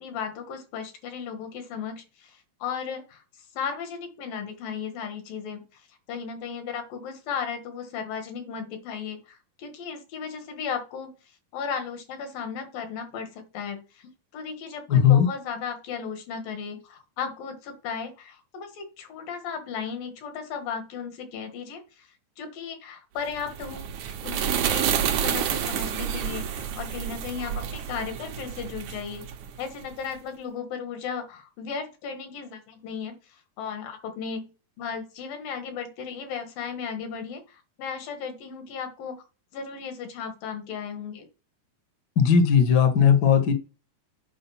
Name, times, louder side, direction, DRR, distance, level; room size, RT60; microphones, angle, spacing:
voice 1, 0.0-3.2 3.5-5.8 6.1-11.1 11.5-21.8 22.4-23.8 24.2-29.3 29.6-33.2 33.6-34.5 34.8-39.2 39.5-41.3, left 6 dB, 75° left, 7 dB, 3.3 m, -35 dB
voice 2, 14.9-15.3 42.2-43.5, left 7 dB, 50° left, 6 dB, 1.2 m, -18 dB
sound 1, 23.3-29.9, right 9 dB, 70° right, 2.2 m, -29 dB
8.9 x 5.0 x 5.6 m, 0.32 s
omnidirectional pair, 4.0 m